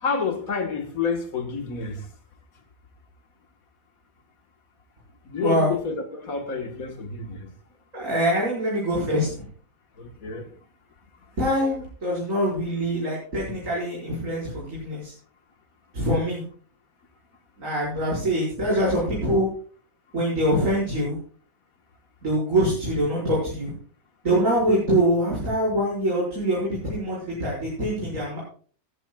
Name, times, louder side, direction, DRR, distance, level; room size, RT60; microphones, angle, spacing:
voice 1, 0.0-2.1 5.3-7.5 10.0-10.5, left 5 dB, 70° left, 2.0 m, -29 dB
voice 2, 7.9-9.5 11.4-15.1 15.9-16.4 17.6-19.5 20.1-21.2 22.2-23.7 24.2-28.4, equal, 60° right, 6.1 m, -24 dB
18.0 x 13.5 x 2.4 m
omnidirectional pair, 1.5 m